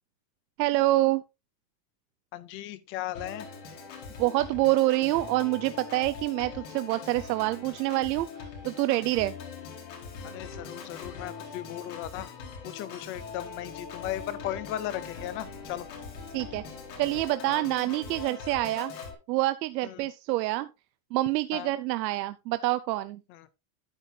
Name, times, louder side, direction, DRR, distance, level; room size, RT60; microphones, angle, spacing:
voice 1, 0.6-1.2 4.2-9.3 16.3-16.6 17.0-18.9 19.3-20.7 21.1-23.2, right 18 dB, 80° right, 0.7 m, -26 dB
voice 2, 2.3-3.5 10.2-12.3 12.6-15.9 17.5-17.7 19.8-20.1 21.5-21.7 23.3-23.5, left 13 dB, 25° left, 0.4 m, -37 dB
Organ, 3.1-19.1, left 5 dB, 80° left, 4.5 m, -42 dB
9.9 x 9.1 x 2.7 m
supercardioid pair, 155°, 50 cm